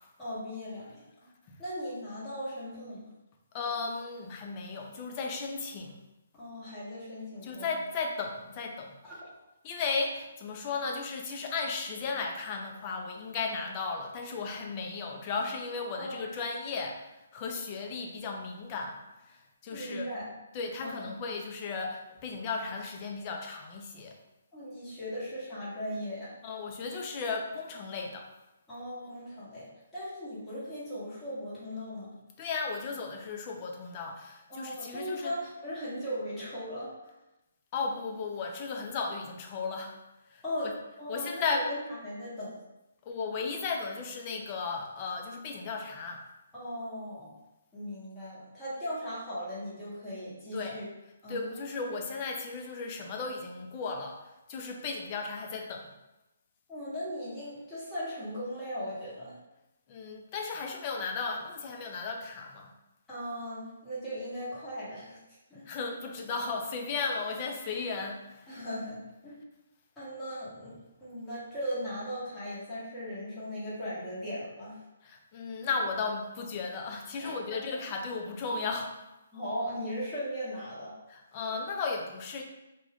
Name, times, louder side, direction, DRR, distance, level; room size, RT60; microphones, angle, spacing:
voice 1, 0.2-1.0 1.6-3.1 6.3-7.8 9.0-9.2 16.0-16.2 19.7-20.3 20.8-21.0 24.5-26.3 28.7-29.7 29.9-32.1 34.5-37.1 40.4-40.7 41.0-42.6 46.5-47.3 47.7-50.8 51.2-51.6 56.7-59.4 63.1-65.2 65.5-65.7 68.5-69.4 70.0-70.7 71.0-74.8 77.2-77.6 79.3-80.9, equal, 10° left, -11 dB, 1.1 m, -38 dB
voice 2, 3.5-6.0 7.4-9.0 9.6-17.0 17.3-19.0 19.3-20.1 20.5-24.2 26.4-28.3 32.4-35.3 37.7-40.0 40.3-40.4 41.1-41.7 43.1-46.2 50.5-50.8 51.3-54.2 54.5-55.9 59.9-62.7 65.7-68.5 75.0-78.9 81.1-82.4, left 4 dB, 30° left, 2 dB, 0.4 m, -35 dB
2.5 x 2.3 x 3.4 m, 0.97 s
hypercardioid pair, 155°, 0 cm